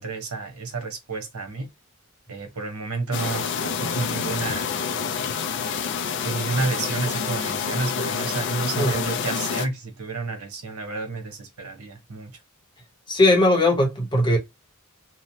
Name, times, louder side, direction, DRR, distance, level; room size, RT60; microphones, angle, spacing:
voice 1, 0.0-1.7 2.3-5.3 6.2-12.3, right 3 dB, 90° right, 0.9 m, -30 dB
sound 1, 3.1-9.7, left 6 dB, 55° left, 0.4 m, -28 dB
voice 2, 13.1-14.4, left 1 dB, 20° left, 0.8 m, -19 dB
2.9 x 2.1 x 2.7 m
head